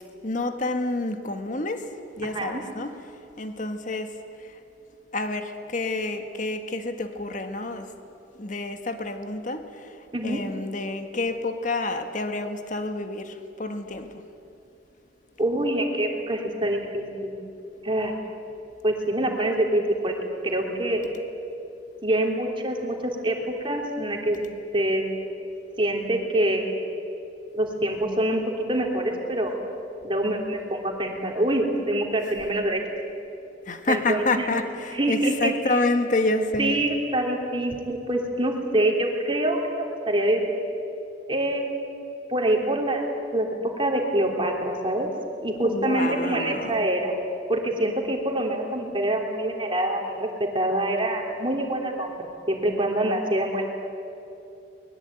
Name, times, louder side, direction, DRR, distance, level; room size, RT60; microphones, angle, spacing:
voice 1, 0.2-1.8 2.2-2.9 3.4-4.1 5.1-7.9 8.4-9.6 10.2-14.1 33.7-36.8 45.6-46.9, left 2 dB, 45° left, 7 dB, 1.6 m, -28 dB
voice 2, 2.2-2.6 10.1-10.4 15.4-17.3 17.8-18.1 18.8-20.1 20.4-21.0 22.0-24.4 24.7-25.1 25.8-26.9 27.5-28.4 28.7-29.5 30.0-32.8 33.9-34.5 34.9-35.8 36.6-40.5 41.3-42.0 42.3-43.0 43.3-43.5 43.8-45.1 45.4-47.1 47.5-52.2 52.5-53.7, right 1 dB, 25° right, 1 dB, 3.2 m, -25 dB
23.5 x 21.0 x 9.1 m, 2.7 s
head